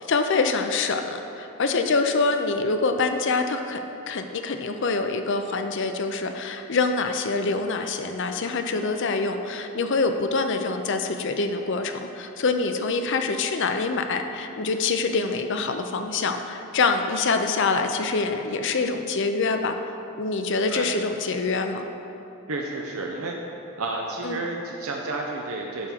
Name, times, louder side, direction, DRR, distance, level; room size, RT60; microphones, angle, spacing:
voice 1, 0.1-3.8 4.1-19.7 20.2-21.8 24.2-24.4, left 4 dB, 55° left, 6 dB, 0.5 m, -25 dB
voice 2, 22.5-23.4 23.8-25.9, right 2 dB, 75° right, 0 dB, 0.7 m, -31 dB
11.0 x 3.7 x 5.8 m, 2.9 s
head